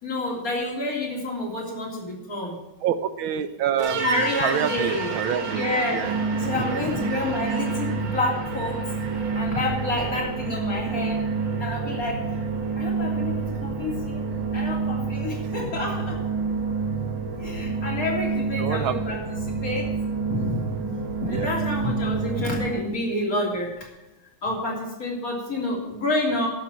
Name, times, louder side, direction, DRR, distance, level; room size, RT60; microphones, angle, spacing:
voice 1, 0.0-2.6 4.0-5.1 5.4-8.8 9.3-11.2 11.6-12.2 12.8-14.3 14.5-16.2 17.4-20.0 20.3-23.9 24.4-26.5, left 2 dB, 45° left, -2 dB, 3.7 m, -29 dB
voice 2, 2.8-5.6 5.9-6.1 6.7-6.8 18.6-19.2 21.3-21.5, right 9 dB, 85° right, 11 dB, 1.7 m, -27 dB
sound 1, 3.8-22.8, right 4 dB, 65° right, 2.4 m, -28 dB
12.0 x 7.5 x 7.4 m, 1.0 s
omnidirectional pair, 2.2 m